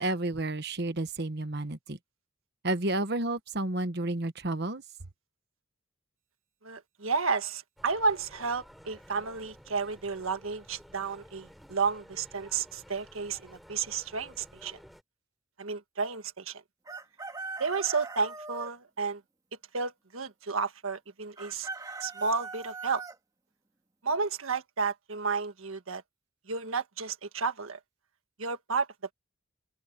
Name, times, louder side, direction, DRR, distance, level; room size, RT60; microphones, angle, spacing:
voice 1, 0.0-2.0 2.6-4.8, right 2 dB, 50° right, 1.3 m, -31 dB
voice 2, 6.6-14.8 15.6-16.6 17.6-19.2 19.7-21.7 22.0-23.0 24.0-26.0 26.5-27.8 28.4-28.9, right 4 dB, 85° right, 1.6 m, -32 dB
sound 1, 7.8-15.0, equal, ahead, 4.8 m, -54 dB
Chicken rooster, 16.9-18.7 21.4-23.2, right 4 dB, 20° right, 2.4 m, -40 dB
open air
head